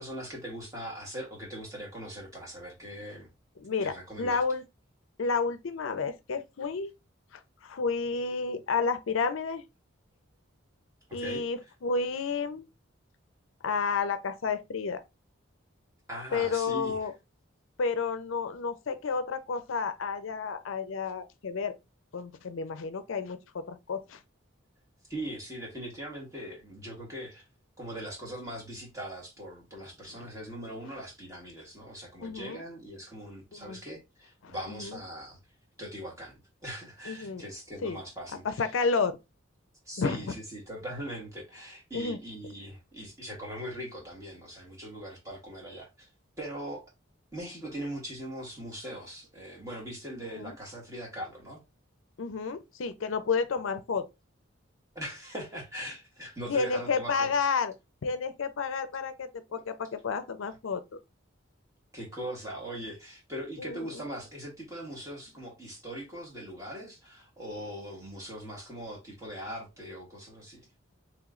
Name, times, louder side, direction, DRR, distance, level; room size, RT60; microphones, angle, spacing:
voice 1, 0.0-3.3 3.8-4.4 11.1-11.4 16.1-17.1 25.1-27.4 27.8-35.4 35.8-38.6 39.8-46.1 46.4-46.9 47.3-51.6 54.9-57.3 59.5-59.6 61.9-70.6, equal, 15° right, 1.5 m, -41 dB
voice 2, 3.6-4.6 5.2-6.9 7.3-9.6 11.1-12.7 13.6-15.0 16.3-17.1 17.8-21.7 22.1-24.2 30.1-30.3 32.2-32.6 33.5-33.8 34.4-35.0 37.1-37.4 37.8-38.0 38.4-39.2 40.0-40.2 41.9-42.2 50.4-50.5 52.2-54.1 56.5-57.7 58.0-61.0 63.6-64.0, left 5 dB, 75° left, 0.5 m, -31 dB
3.1 x 3.0 x 3.7 m
head